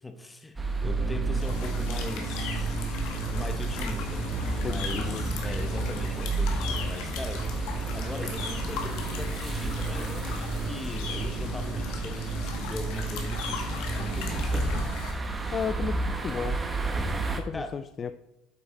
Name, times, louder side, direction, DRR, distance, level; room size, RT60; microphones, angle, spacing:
voice 1, 0.0-2.8 3.3-7.5 7.8-15.0 17.5-17.8, left 2 dB, 10° left, 0.7 m, -41 dB
sound 1, 0.6-17.4, right 3 dB, 15° right, 1.0 m, -32 dB
sound 2, 0.8-14.4, right 2 dB, 35° right, 2.5 m, -35 dB
sound 3, 1.3-15.1, left 6 dB, 75° left, 1.6 m, -39 dB
voice 2, 4.6-5.3 15.5-16.6 17.4-18.1, left 6 dB, 30° left, 0.3 m, -33 dB
8.3 x 5.3 x 4.0 m
cardioid pair, 120°, 0 cm